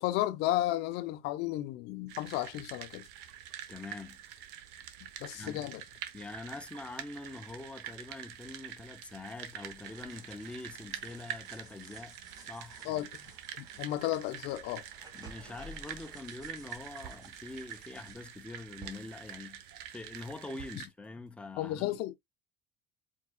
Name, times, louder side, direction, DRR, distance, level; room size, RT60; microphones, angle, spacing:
voice 1, 0.0-3.0 5.2-5.8 12.9-13.1 13.6-14.8 21.6-22.2, left 15 dB, 70° left, 0.6 m, -33 dB
sound 1, 2.1-20.9, right 10 dB, 75° right, 0.9 m, -46 dB
voice 2, 3.7-4.2 5.3-5.6 6.1-13.1 15.1-19.6 19.9-22.0, left 2 dB, 5° left, 0.6 m, -45 dB
sound 2, 9.5-18.1, equal, 20° right, 2.0 m, -56 dB
sound 3, 14.4-14.9 15.2-21.3, right 9 dB, 50° right, 1.2 m, -55 dB
4.5 x 4.5 x 2.3 m
cardioid pair, 125°, 18 cm